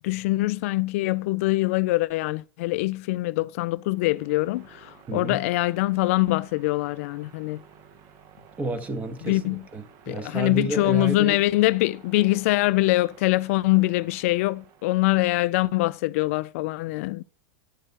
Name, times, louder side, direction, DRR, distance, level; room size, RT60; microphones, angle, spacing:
voice 1, 0.0-7.6 9.2-9.6 10.1-17.2, left 19 dB, 55° left, 0.4 m, -24 dB
sound 1, 3.7-15.3, right 7 dB, 40° right, 1.3 m, -53 dB
voice 2, 5.1-5.4 8.6-11.4, right 2 dB, 15° right, 1.4 m, -31 dB
10.0 x 6.2 x 4.2 m
supercardioid pair, 140°, 9 cm